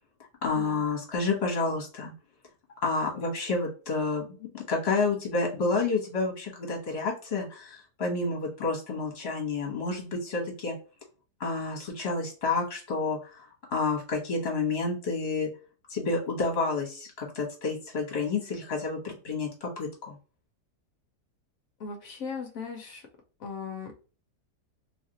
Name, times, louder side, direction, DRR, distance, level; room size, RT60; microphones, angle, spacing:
voice 1, 0.4-2.1 2.8-10.7 11.4-15.5 15.9-20.2, left 3 dB, 40° left, -1 dB, 1.2 m, -30 dB
voice 2, 21.8-23.1 23.4-23.9, left 5 dB, 65° left, 3 dB, 1.0 m, -38 dB
3.1 x 2.4 x 2.7 m, 0.37 s
omnidirectional pair, 1.8 m